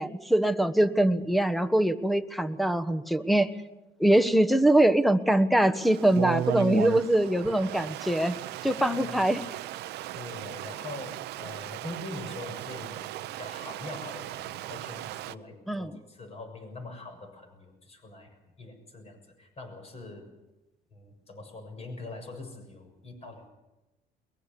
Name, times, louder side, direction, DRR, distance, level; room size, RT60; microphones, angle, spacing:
voice 1, 0.0-3.5 4.0-8.3 8.6-9.4 15.7-15.9, right 1 dB, ahead, 11 dB, 1.3 m, -23 dB
Stream, 5.7-15.3, right 14 dB, 80° right, 0.8 m, -36 dB
voice 2, 10.0-18.3 18.6-20.3 20.9-23.5, left 2 dB, 40° left, 5 dB, 6.8 m, -43 dB
22.5 x 21.5 x 6.9 m, 1.0 s
cardioid pair, 110°, 17 cm